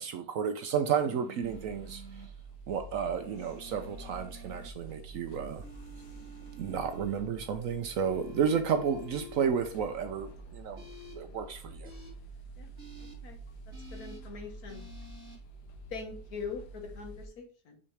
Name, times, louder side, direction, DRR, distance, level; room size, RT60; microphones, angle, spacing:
voice 1, 0.0-2.2 2.7-5.6 6.6-10.8 11.2-11.9, right 7 dB, 65° right, 0.9 m, -32 dB
sound 1, 1.0-2.3 3.2-4.7 5.6-7.2 8.0-9.4 10.8-11.1 11.8-12.1 12.8-13.1 13.7-14.2 14.7-15.4, left 1 dB, 40° right, 2.6 m, -50 dB
sound 2, 1.4-17.3, right 2 dB, 85° left, 1.4 m, -48 dB
voice 2, 13.9-14.8 15.9-17.8, left 5 dB, 65° left, 1.6 m, -42 dB
5.5 x 5.2 x 3.3 m
omnidirectional pair, 1.7 m